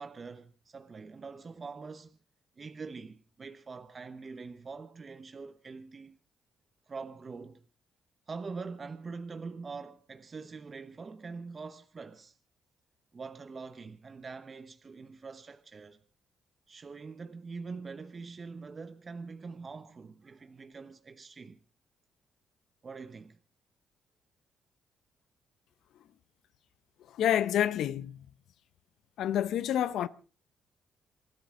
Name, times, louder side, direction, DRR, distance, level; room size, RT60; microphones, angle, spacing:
voice 1, 0.0-2.2 2.6-6.2 6.9-7.6 8.3-12.4 13.1-16.0 16.7-21.6 22.8-23.4, right 4 dB, 35° right, 1.1 m, -44 dB
voice 2, 27.2-28.2 29.2-30.1, left 11 dB, 80° left, 0.8 m, -28 dB
27.5 x 12.5 x 3.8 m
cardioid pair, 90°, 0 cm